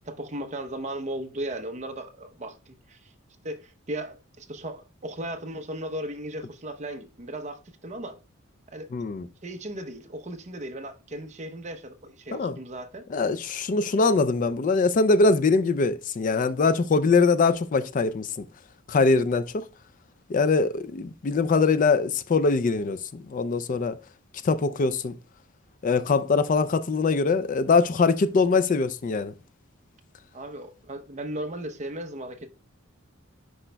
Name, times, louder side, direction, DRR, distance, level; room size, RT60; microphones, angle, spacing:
voice 1, 0.0-3.1 3.4-8.2 8.7-8.9 9.4-13.0 30.3-32.5, right 1 dB, 35° right, 0.8 m, -36 dB
voice 2, 8.9-9.3 12.3-12.6 13.1-18.5 18.9-19.6 20.3-24.0 24.4-25.1 25.8-29.3, left 4 dB, 40° left, 0.3 m, -22 dB
9.8 x 5.0 x 2.2 m
head